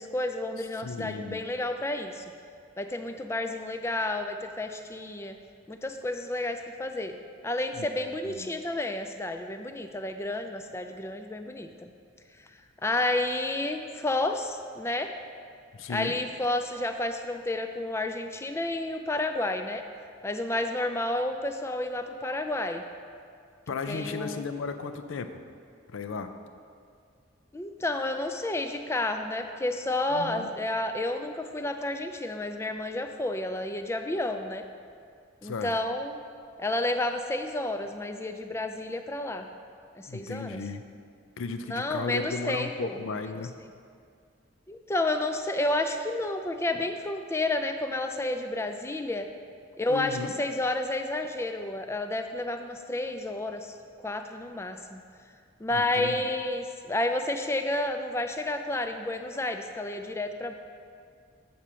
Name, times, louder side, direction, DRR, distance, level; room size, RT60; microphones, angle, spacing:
voice 1, 0.0-2.2 2.8-5.3 5.7-7.2 7.4-11.9 12.8-15.1 15.9-19.8 20.2-22.8 23.9-24.4 27.5-34.7 35.4-36.2 36.6-39.5 39.9-40.6 41.7-43.3 44.7-49.3 49.8-53.7 54.0-55.0 55.6-60.5, left 2 dB, 15° left, 7 dB, 0.3 m, -30 dB
voice 2, 0.8-1.4 7.8-8.5 15.7-16.1 23.7-25.4 25.9-26.3 30.1-30.5 35.4-35.7 40.1-40.8 41.4-43.5 49.9-50.3 55.7-56.2, left 4 dB, 85° left, 9 dB, 0.5 m, -35 dB
8.4 x 4.3 x 6.1 m, 2.3 s
head